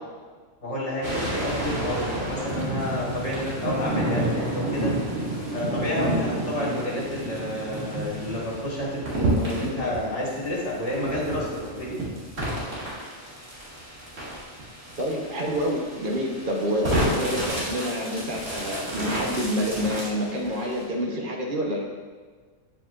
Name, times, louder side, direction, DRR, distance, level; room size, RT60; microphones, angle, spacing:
voice 1, 0.6-4.9 5.5-12.0, left 1 dB, 55° left, -5 dB, 2.1 m, -30 dB
sound 1, 1.0-20.8, right 1 dB, 65° right, 2.5 m, -30 dB
voice 2, 15.0-21.8, equal, 40° right, -1 dB, 1.2 m, -27 dB
8.6 x 7.6 x 2.5 m, 1.5 s
omnidirectional pair, 1.4 m